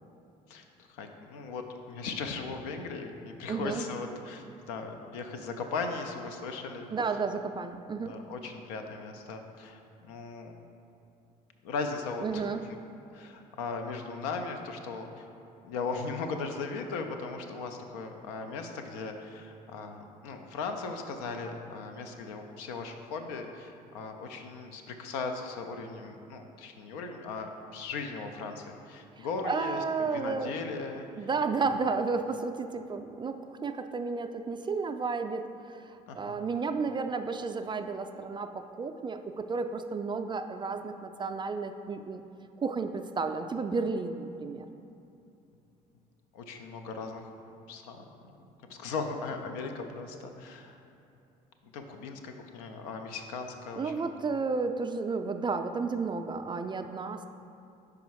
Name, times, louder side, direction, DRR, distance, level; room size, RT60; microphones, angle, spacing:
voice 1, 0.5-6.9 8.0-10.5 11.6-12.5 13.1-15.3 15.6-31.1 36.1-36.4 46.3-47.2 47.7-48.1 48.7-50.8 51.6-54.1, left 4 dB, 75° left, 4 dB, 0.6 m, -38 dB
voice 2, 3.5-3.8 6.9-8.1 12.2-12.6 29.2-30.5 31.2-35.5 35.7-35.8 36.1-42.2 42.6-44.7 53.8-57.3, right 4 dB, 25° right, 7 dB, 0.4 m, -32 dB
5.0 x 4.8 x 4.7 m, 2.7 s
hypercardioid pair, 55°, 20 cm